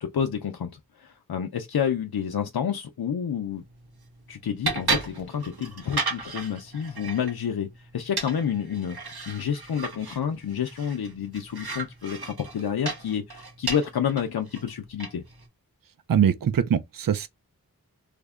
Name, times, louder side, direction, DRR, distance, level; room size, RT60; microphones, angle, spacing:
voice 1, 0.0-0.7 1.0-3.6 4.3-9.0 9.3-15.2, left 8 dB, 85° left, 0.5 m, -29 dB
sound 1, 3.5-15.5, right 3 dB, 85° right, 1.1 m, -35 dB
voice 2, 16.1-17.3, right 8 dB, 65° right, 0.5 m, -22 dB
3.3 x 2.1 x 3.5 m
wide cardioid pair, 40°, 37 cm